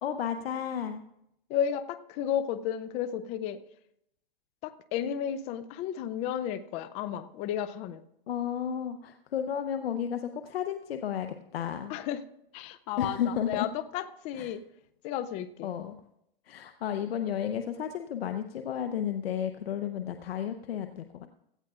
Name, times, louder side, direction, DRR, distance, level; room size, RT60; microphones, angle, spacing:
voice 1, 0.0-1.0 8.3-11.9 13.0-13.7 14.4-14.5 15.6-16.0 16.5-21.3, left 9 dB, 85° left, 7 dB, 0.9 m, -33 dB
voice 2, 1.5-3.6 4.6-8.0 11.9-12.2 12.5-14.6 15.0-15.7, left 9 dB, 25° left, 15 dB, 0.5 m, -33 dB
17.5 x 12.5 x 2.4 m, 0.78 s
hypercardioid pair, 150°, 29 cm